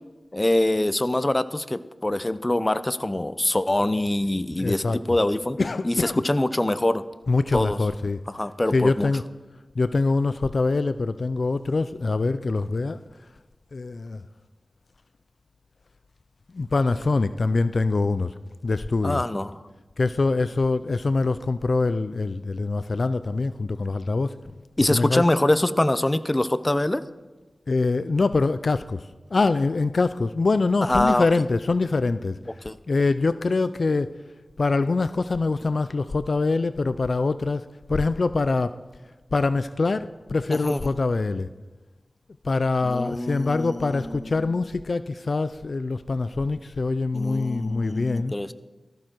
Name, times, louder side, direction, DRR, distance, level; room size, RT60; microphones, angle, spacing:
voice 1, 0.3-5.6 5.8-7.0 7.5-7.8 8.3-9.1 19.0-19.6 24.8-27.0 30.8-31.3 32.6-32.8 40.5-40.8 42.8-44.5 47.1-48.5, left 1 dB, 25° left, 0.7 m, -24 dB
voice 2, 4.6-5.2 5.6-6.3 7.3-8.2 8.7-9.2 9.8-13.0 13.7-14.2 16.5-18.3 18.6-19.2 20.0-24.4 24.8-25.3 27.7-34.1 34.6-38.8 39.3-41.5 42.4-48.3, left 3 dB, 65° left, 0.4 m, -24 dB
18.0 x 14.0 x 4.5 m
cardioid pair, 45°, 0 cm